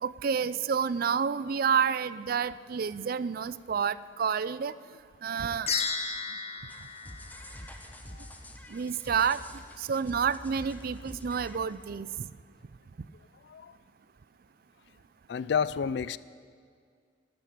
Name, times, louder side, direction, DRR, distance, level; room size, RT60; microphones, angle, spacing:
voice 1, 0.0-4.7 5.2-5.7 8.7-9.4 9.8-12.3, right 6 dB, 50° right, 0.4 m, -29 dB
sound 1, 5.7-8.1, left 5 dB, 35° left, 1.1 m, -34 dB
sound 2, 6.7-12.1, left 1 dB, 10° left, 1.0 m, -47 dB
voice 2, 15.3-16.2, left 6 dB, 60° left, 0.4 m, -30 dB
12.0 x 9.2 x 10.0 m
head